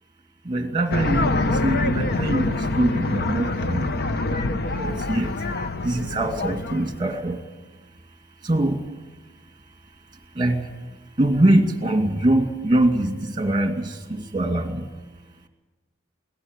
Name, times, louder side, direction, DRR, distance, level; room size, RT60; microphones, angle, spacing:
voice 1, 0.4-3.9 4.8-5.4 5.8-7.4 8.4-8.9 10.1-14.9, right 1 dB, 20° right, 5 dB, 2.3 m, -23 dB
sound 1, 0.9-7.2, left 2 dB, 50° left, 1.0 m, -25 dB
21.0 x 18.0 x 8.2 m, 1.2 s
head